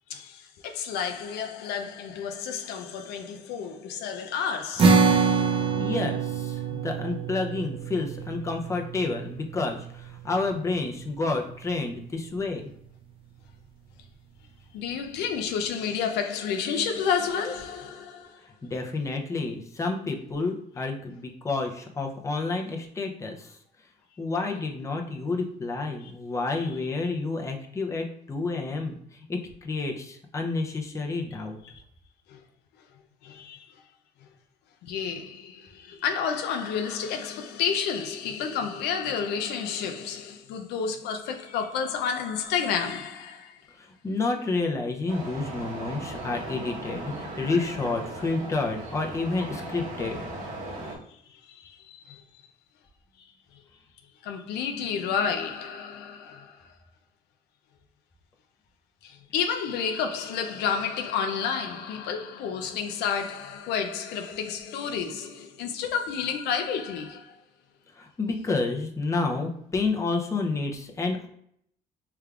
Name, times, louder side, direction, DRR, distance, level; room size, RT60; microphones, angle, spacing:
voice 1, 0.1-5.5 14.7-18.4 26.0-26.1 31.6-31.8 32.3-32.4 33.2-33.7 34.8-43.6 51.3-52.2 53.5-53.6 54.2-56.7 59.0-67.4, left 7 dB, 80° left, 0.5 m, -31 dB
yamaha Bm, 4.8-11.4, right 5 dB, 30° right, 0.5 m, -26 dB
voice 2, 5.8-12.7 18.6-23.6 24.2-31.6 43.8-50.2 67.9-71.3, left 3 dB, 15° left, 0.6 m, -30 dB
sound 1, 45.1-51.0, right 2 dB, 50° right, 1.2 m, -38 dB
3.4 x 3.3 x 2.4 m
cardioid pair, 110°, 17 cm